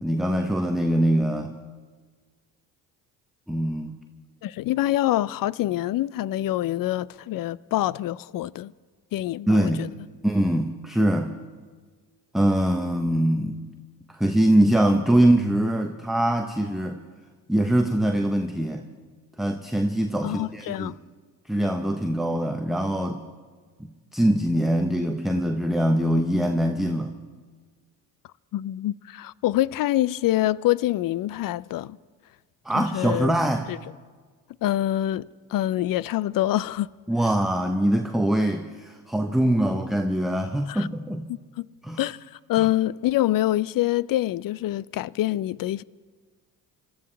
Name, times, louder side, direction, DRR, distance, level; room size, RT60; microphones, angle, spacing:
voice 1, 0.0-1.5 3.5-3.9 9.5-9.9 10.2-11.3 12.3-13.6 14.1-17.0 17.5-18.8 19.4-21.0 21.5-23.2 23.8-27.1 32.6-33.7 37.1-41.3 41.8-42.0 42.6-42.7, right 1 dB, ahead, 0.9 m, -23 dB
voice 2, 4.4-8.7 9.1-9.9 20.2-20.9 28.5-32.0 32.7-33.4 33.7-33.8 34.6-36.9 40.7-40.9 41.6-41.7 42.0-42.2 42.5-45.8, left 14 dB, 45° left, 0.5 m, -25 dB
26.5 x 13.5 x 3.4 m
hypercardioid pair, 55°, 47 cm